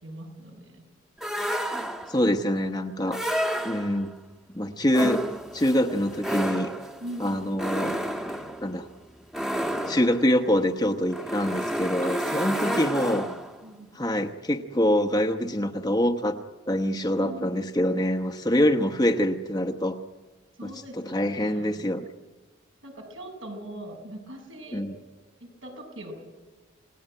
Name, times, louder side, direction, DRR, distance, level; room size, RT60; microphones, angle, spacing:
voice 1, 0.0-0.9 7.0-7.5 12.0-12.2 12.6-13.3 13.6-13.9 17.2-17.7 20.6-21.8 22.8-24.9 25.4-26.1, right 1 dB, 75° right, 3 dB, 6.9 m, -41 dB
sound 1, 1.2-2.3 3.1-4.1 4.9-13.6, equal, ahead, 1.3 m, -31 dB
voice 2, 2.1-3.2 3.6-4.1 4.5-5.2 5.5-6.7 7.2-7.9 8.6-8.9 9.9-13.2 13.9-16.4 16.7-20.0 20.6-22.1 24.7-25.0, equal, 20° left, 3 dB, 1.0 m, -25 dB
29.0 x 18.5 x 9.1 m, 1.3 s
head